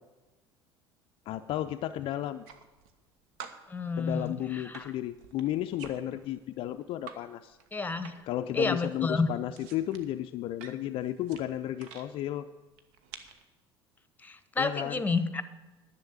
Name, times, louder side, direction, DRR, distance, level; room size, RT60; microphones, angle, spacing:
voice 1, 1.3-2.4 4.0-7.6 8.2-12.5 14.6-15.0, left 12 dB, 45° left, 9 dB, 0.4 m, -33 dB
sound 1, 2.2-3.1 3.4-7.2 7.5-8.4 8.7-12.1 12.7-13.4, right 7 dB, 60° right, 1.1 m, -49 dB
voice 2, 3.7-4.9 7.7-8.1 8.5-9.3 14.2-15.4, left 4 dB, 15° left, 12 dB, 0.9 m, -30 dB
11.0 x 7.0 x 8.7 m, 1.2 s
figure-of-eight pair, 65°, 13 cm